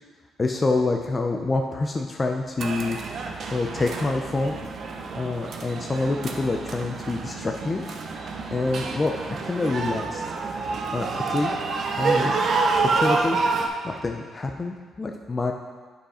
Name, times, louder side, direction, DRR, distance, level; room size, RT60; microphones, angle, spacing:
voice 1, 0.4-3.0 3.5-4.6 5.2-7.8 8.5-9.1 9.4-10.2 10.9-11.5 12.0-12.3 12.7-13.4 13.8-15.5, left 3 dB, 30° left, 2 dB, 0.6 m, -26 dB
sound 1, 2.6-13.7, right 4 dB, 60° right, 0.9 m, -28 dB
9.0 x 5.6 x 4.3 m, 1.5 s
cardioid pair, 90°, 0 cm